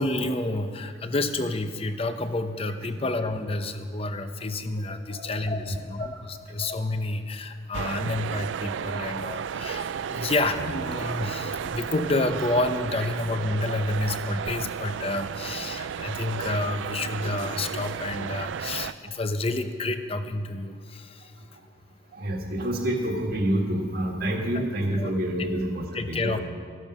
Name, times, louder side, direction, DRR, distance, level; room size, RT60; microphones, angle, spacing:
voice 1, 0.0-21.3 24.5-24.6 24.9-25.1 25.9-26.4, left 2 dB, 30° left, 9 dB, 0.7 m, -29 dB
voice 2, 4.8-5.3 5.6-5.8 13.0-13.1 16.2-16.3 22.1-26.4, right 1 dB, 50° right, 1 dB, 1.8 m, -28 dB
sound 1, 7.7-18.9, right 7 dB, 75° right, 0.4 m, -33 dB
14.0 x 11.0 x 6.2 m, 2.1 s
head